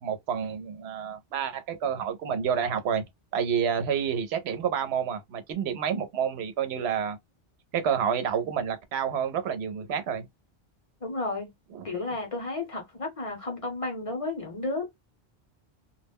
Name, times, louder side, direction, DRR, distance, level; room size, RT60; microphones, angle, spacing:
voice 1, 0.0-3.0 3.3-7.2 7.7-10.3 11.7-11.9, right 7 dB, 75° right, 0.8 m, -29 dB
voice 2, 11.0-11.5 11.8-14.9, left 2 dB, 35° left, 0.7 m, -32 dB
2.2 x 2.0 x 3.4 m
omnidirectional pair, 1.1 m